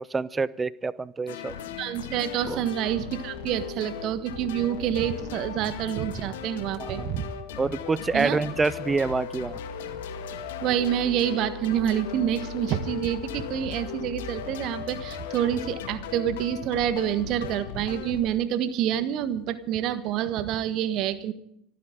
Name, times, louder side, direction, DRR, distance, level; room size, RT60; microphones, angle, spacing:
voice 1, 0.0-1.6 2.5-2.6 6.8-7.1 7.6-9.6, right 4 dB, 15° right, 20 dB, 0.7 m, -27 dB
sound 1, 1.3-18.2, left 7 dB, 60° left, 1.8 m, -37 dB
voice 2, 1.8-7.3 8.1-8.4 10.6-21.3, right 10 dB, 45° right, 13 dB, 1.4 m, -27 dB
25.0 x 14.5 x 3.7 m, 0.72 s
figure-of-eight pair, 75°, 0 cm